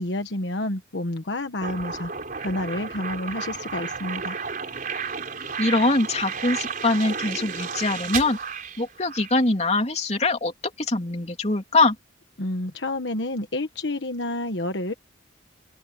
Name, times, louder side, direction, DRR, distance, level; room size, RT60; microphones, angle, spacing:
voice 1, 0.0-2.1 2.4-4.4 12.4-14.9, left 1 dB, 70° left, 1.3 m, -29 dB
sound 1, 1.6-9.4, right 6 dB, 45° right, 4.2 m, -32 dB
voice 2, 5.6-8.4 8.8-11.9, left 2 dB, 35° left, 3.3 m, -23 dB
open air
head